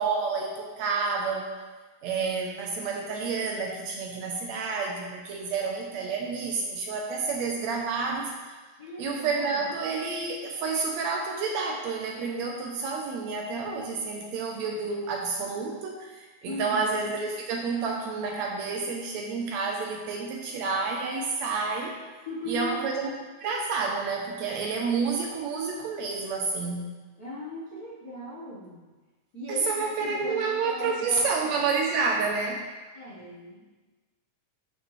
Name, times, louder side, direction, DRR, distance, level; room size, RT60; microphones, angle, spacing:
voice 1, 0.0-1.5 2.0-8.6 9.0-22.0 22.5-23.1 23.4-26.9 29.5-32.7, right 4 dB, 75° right, 0 dB, 1.7 m, -29 dB
voice 2, 8.8-9.6 16.4-16.9 22.3-22.8 27.2-28.9 29.3-31.6 32.9-33.8, left 1 dB, 85° left, -8 dB, 0.8 m, -38 dB
9.3 x 5.6 x 3.2 m, 1.3 s
omnidirectional pair, 3.6 m